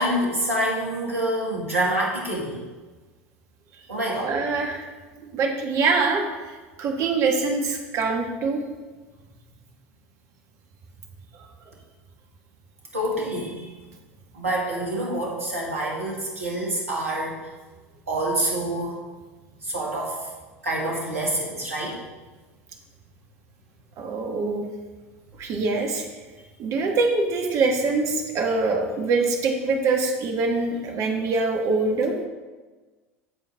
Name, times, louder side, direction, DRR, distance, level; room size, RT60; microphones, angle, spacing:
voice 1, 0.0-2.6 3.9-4.3 12.9-13.7 14.3-17.3 18.1-19.0 19.6-20.2 20.6-22.0, right 1 dB, 80° right, -3 dB, 2.0 m, -26 dB
voice 2, 4.2-4.9 5.3-8.6 24.0-24.6 25.4-26.0 26.6-32.2, right 3 dB, 45° right, 2 dB, 1.5 m, -24 dB
14.0 x 4.7 x 3.5 m, 1.3 s
figure-of-eight pair, 70°, 7 cm